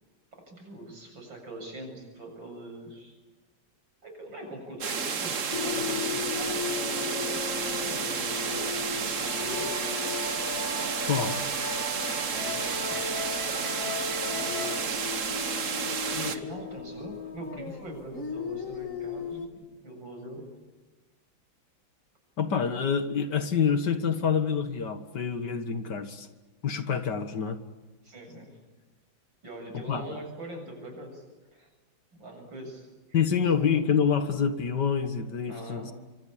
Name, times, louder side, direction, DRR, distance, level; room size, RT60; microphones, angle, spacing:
voice 1, 0.5-3.2 4.0-8.7 8.9-9.7 12.1-15.0 16.1-20.5 28.0-28.6 29.4-31.2 31.5-31.7 32.2-32.9 33.2-33.4 35.5-35.9, right 1 dB, 75° right, 3 dB, 8.4 m, -43 dB
sound 1, 4.8-16.4, right 6 dB, 45° right, 1.5 m, -31 dB
sound 2, 5.5-12.9 13.2-13.4 14.1-19.5, left 7 dB, 40° left, 2.4 m, -37 dB
sound 3, 9.2-14.8, left 2 dB, 85° left, 6.7 m, -37 dB
voice 2, 22.4-26.3 26.6-27.6 29.7-30.0 33.1-35.9, left 6 dB, 60° left, 9 dB, 2.3 m, -27 dB
25.5 x 25.5 x 8.7 m, 1.2 s
omnidirectional pair, 2.1 m